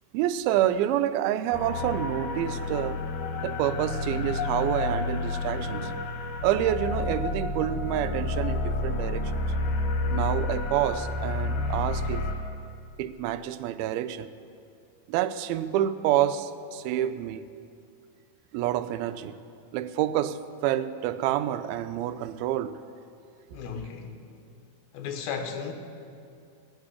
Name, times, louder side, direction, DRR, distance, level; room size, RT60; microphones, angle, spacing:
voice 1, 0.1-3.0 3.4-6.0 6.4-9.4 10.1-12.3 13.0-14.3 15.1-17.5 18.5-19.4 19.7-22.8, right 12 dB, 90° right, 2.4 m, -28 dB
sound 1, 1.5-12.3, left 2 dB, 60° left, 1.9 m, -30 dB
voice 2, 23.5-24.2 24.9-25.7, left 6 dB, 90° left, 2.9 m, -35 dB
17.5 x 6.6 x 9.8 m
omnidirectional pair, 4.2 m